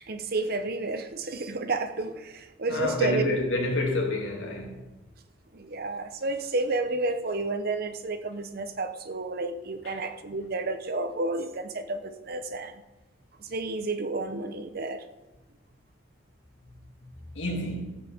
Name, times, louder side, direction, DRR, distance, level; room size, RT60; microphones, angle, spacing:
voice 1, 0.1-3.4 5.5-12.8 13.4-15.0, right 2 dB, 55° right, 0.9 m, -31 dB
voice 2, 2.7-4.8 9.8-10.0 17.3-18.0, left 2 dB, 75° left, 2.5 m, -29 dB
14.0 x 5.7 x 7.1 m
head